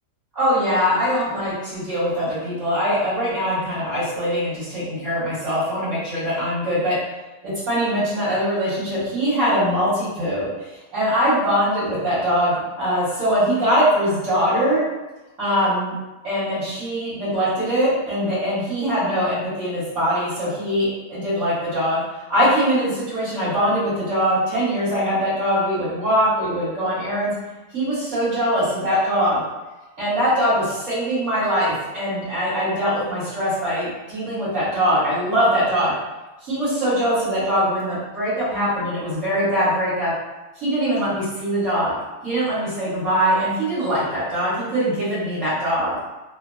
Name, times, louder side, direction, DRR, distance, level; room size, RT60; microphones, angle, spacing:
voice 1, 0.3-7.0 7.4-14.8 15.4-15.9 16.2-22.0 22.3-27.3 27.7-29.4 30.0-35.9 36.4-40.1 40.5-42.0 42.2-45.9, equal, 50° right, -13 dB, 1.7 m, -22 dB
3.4 x 2.2 x 2.3 m, 1.1 s
omnidirectional pair, 1.8 m